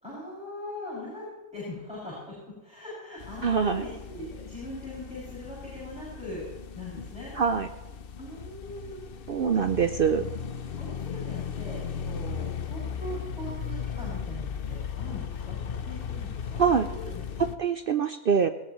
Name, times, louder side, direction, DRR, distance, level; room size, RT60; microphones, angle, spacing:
voice 1, 0.0-2.4 2.6-6.5 6.7-7.4 8.2-9.0 9.4-9.5 10.8-16.6 16.9-17.2, left 1 dB, 5° right, -9 dB, 6.6 m, -41 dB
sound 1, 3.2-17.6, left 7 dB, 50° left, 0.8 m, -37 dB
voice 2, 3.4-3.8 7.4-7.7 9.3-10.3 16.6-16.9 17.4-18.5, right 6 dB, 55° right, 9 dB, 0.7 m, -24 dB
20.0 x 17.5 x 3.1 m, 1.1 s
omnidirectional pair, 1.4 m